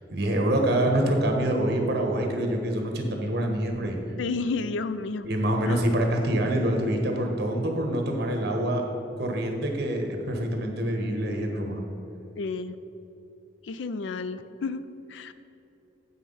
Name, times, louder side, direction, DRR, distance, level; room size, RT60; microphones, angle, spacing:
voice 1, 0.0-4.0 5.2-8.9 9.2-11.8, right 1 dB, 60° right, 2 dB, 1.2 m, -26 dB
voice 2, 4.2-5.3 5.6-5.8 12.4-12.8 13.6-15.3, left 4 dB, 75° left, 13 dB, 0.4 m, -31 dB
8.1 x 5.8 x 5.5 m, 2.9 s
head